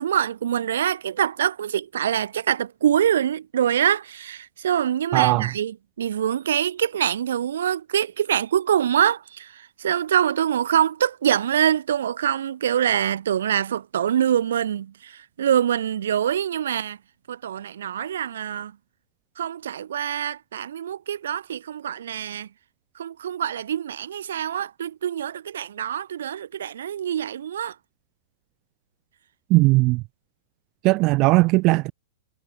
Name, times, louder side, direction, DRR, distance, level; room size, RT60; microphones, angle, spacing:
voice 1, 0.0-17.0 17.3-18.7 19.4-22.5 23.0-27.8, right 9 dB, 85° right, 1.9 m, -24 dB
voice 2, 5.1-5.5 29.5-30.0 30.8-31.9, right 23 dB, 35° right, 0.3 m, -18 dB
hypercardioid pair, 155°, 0 cm